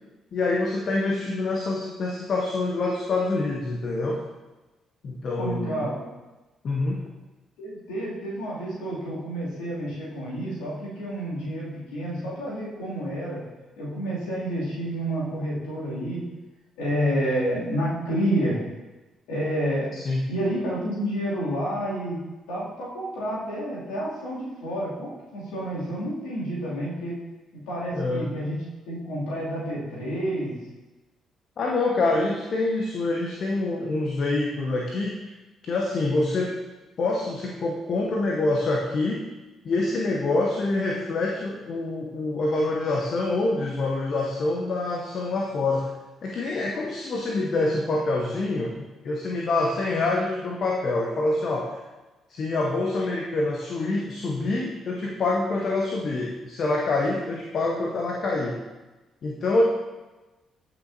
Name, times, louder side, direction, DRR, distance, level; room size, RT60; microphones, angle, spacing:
voice 1, 0.3-4.2 5.0-5.9 6.6-7.0 19.9-20.2 27.9-28.3 31.6-35.3 35.6-36.5 37.0-39.3 39.6-45.9 46.2-51.8 52.3-58.6 59.2-59.6, left 2 dB, 50° left, 0 dB, 0.8 m, -26 dB
voice 2, 5.4-6.0 7.6-13.4 13.8-16.2 16.8-18.6 19.3-19.9 20.3-27.1 27.5-28.6 28.9-30.5, equal, 70° left, -7 dB, 2.7 m, -29 dB
14.0 x 6.0 x 2.8 m, 1.1 s
figure-of-eight pair, 40°, 0 cm